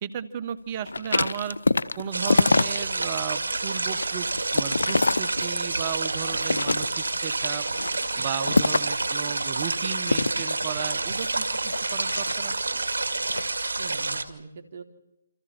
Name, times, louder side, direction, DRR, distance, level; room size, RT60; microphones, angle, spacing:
voice 1, 0.0-1.6 2.0-4.3 4.5-7.6 8.2-12.8, right 9 dB, 30° right, 12 dB, 1.6 m, -35 dB
sound 1, 0.9-3.1 3.5-5.9 6.3-7.2 7.7-9.0 10.0-12.7 13.2-13.5, left 3 dB, 85° left, 0.8 m, -26 dB
sound 2, 2.1-14.2, right 3 dB, 80° right, 2.4 m, -28 dB
voice 2, 8.1-8.6 13.8-14.8, right 5 dB, 45° right, 5 dB, 3.2 m, -43 dB
28.5 x 27.0 x 4.5 m, 0.93 s
hypercardioid pair, 155°, 0 cm